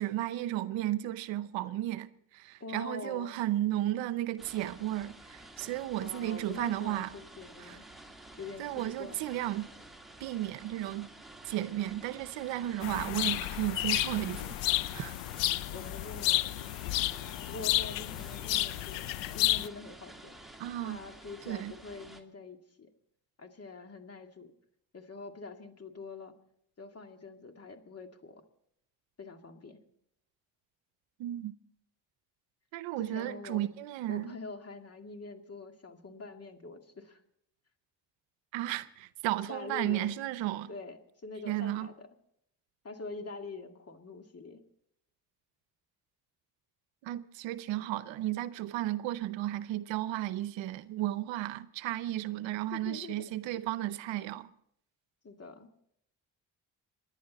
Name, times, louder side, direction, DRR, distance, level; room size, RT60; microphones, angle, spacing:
voice 1, 0.0-2.1 2.3-7.1 7.7-7.8 8.6-9.7 10.2-11.1 11.4-15.2 20.6-21.0 21.5-21.7 31.2-31.5 32.7-34.3 38.5-40.7 41.5-41.9 47.0-54.5, right 14 dB, 85° right, 0.8 m, -34 dB
voice 2, 2.6-3.4 6.0-7.9 8.4-9.3 15.5-16.7 17.5-19.0 19.3-20.4 20.8-22.9 23.4-24.5 24.9-26.3 26.8-28.4 29.2-29.8 33.0-33.6 34.1-37.2 39.5-40.1 40.7-42.1 42.8-44.6 52.7-53.2 53.5-53.7 55.2-55.7, left 3 dB, 35° left, 2.2 m, -45 dB
sound 1, 4.4-22.2, right 1 dB, ahead, 2.2 m, -51 dB
sound 2, 12.8-19.7, left 17 dB, 80° left, 0.6 m, -31 dB
26.5 x 10.5 x 4.1 m
supercardioid pair, 65°, 44 cm